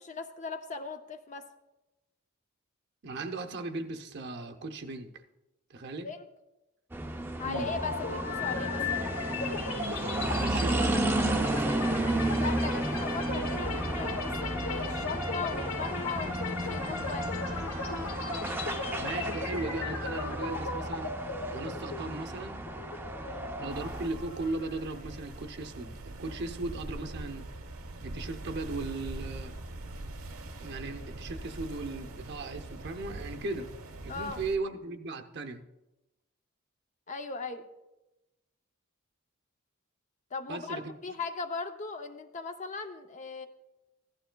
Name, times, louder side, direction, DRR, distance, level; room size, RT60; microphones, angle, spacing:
voice 1, 0.0-1.5 6.0-6.3 7.4-8.8 12.3-17.4 23.2-23.5 34.1-34.4 37.1-37.6 40.3-43.5, left 4 dB, 35° left, 7 dB, 0.6 m, -38 dB
voice 2, 3.0-5.1 5.7-6.1 7.4-7.7 10.3-11.1 19.0-21.1 21.5-22.6 23.6-27.5 28.0-29.5 30.6-33.7 34.0-35.6 40.5-40.9, right 2 dB, 50° right, 6 dB, 0.7 m, -37 dB
sound 1, 6.9-24.1, right 1 dB, 10° right, 0.4 m, -33 dB
sound 2, 7.5-25.3, left 3 dB, 70° left, 1.0 m, -37 dB
sound 3, 23.7-34.6, right 2 dB, 90° right, 1.0 m, -42 dB
15.5 x 11.5 x 2.3 m, 1.0 s
head